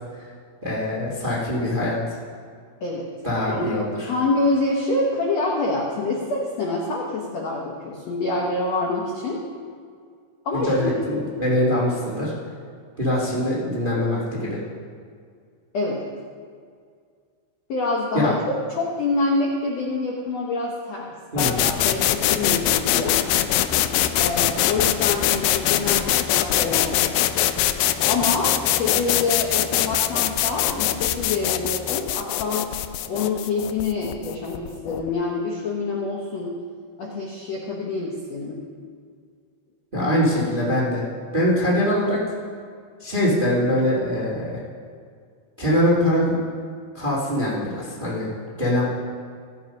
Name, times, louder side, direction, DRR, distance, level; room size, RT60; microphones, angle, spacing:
voice 1, 0.6-2.2 3.2-4.1 10.5-12.3 13.0-14.6 18.2-18.3 21.3-21.6 39.9-41.0 41.3-42.2 43.0-44.6 45.6-46.5 46.9-48.3 48.6-48.8, left 1 dB, 25° right, -4 dB, 1.1 m, -23 dB
voice 2, 4.1-9.4 10.4-10.7 15.7-16.0 17.7-23.2 24.2-27.1 28.1-32.7 33.1-36.6 37.0-38.6, left 3 dB, 70° left, -1 dB, 1.6 m, -26 dB
sound 1, 21.4-35.1, left 13 dB, 90° left, 2.0 m, -23 dB
sound 2, 23.0-32.0, equal, 65° right, 2.9 m, -41 dB
16.5 x 7.4 x 5.2 m, 2.1 s
omnidirectional pair, 4.7 m